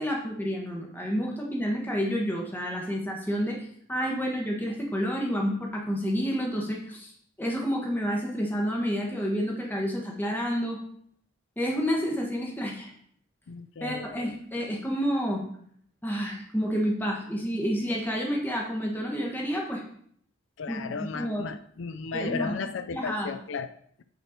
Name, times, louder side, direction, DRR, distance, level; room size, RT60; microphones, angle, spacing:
voice 1, 0.0-3.6 3.9-7.1 7.4-10.8 11.6-12.9 13.8-15.4 16.0-19.8 20.7-21.4 22.1-22.5 22.9-23.3, equal, 10° left, -1 dB, 1.2 m, -29 dB
voice 2, 13.5-14.3 20.6-23.7, left 5 dB, 65° left, 11 dB, 0.4 m, -35 dB
9.0 x 4.3 x 5.0 m, 0.64 s
head